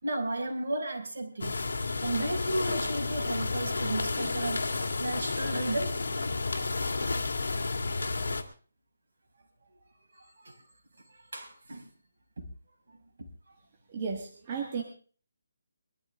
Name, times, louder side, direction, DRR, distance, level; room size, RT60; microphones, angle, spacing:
voice 1, 0.0-1.6 2.0-4.7 5.0-6.0 7.0-7.1 10.1-10.6 11.1-11.9 13.2-13.5, right 1 dB, 60° right, 1 dB, 5.8 m, -34 dB
sound 1, 1.4-8.4, left 3 dB, 70° left, 2.4 m, -31 dB
voice 2, 13.9-14.8, right 6 dB, 20° right, 1 dB, 1.6 m, -34 dB
22.0 x 13.5 x 3.6 m, 0.40 s
hypercardioid pair, 180°, 0 cm